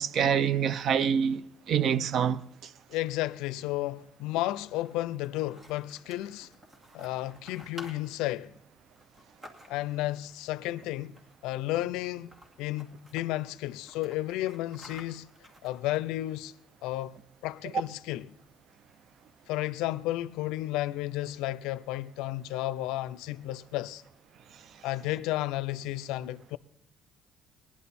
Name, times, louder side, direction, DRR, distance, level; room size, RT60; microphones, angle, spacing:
voice 1, 0.0-2.7, right 8 dB, 60° right, 0.5 m, -26 dB
voice 2, 2.9-6.5 6.9-8.5 9.7-12.3 12.6-15.3 15.6-16.5 16.8-18.3 19.5-24.0 24.8-26.6, left 16 dB, 85° left, 0.4 m, -33 dB
sound 1, 4.5-10.0 11.1-11.5 11.8-11.9 12.2-13.2 13.7-16.3, left 1 dB, 40° right, 2.3 m, -52 dB
18.5 x 11.0 x 4.2 m
cardioid pair, 90°, 0 cm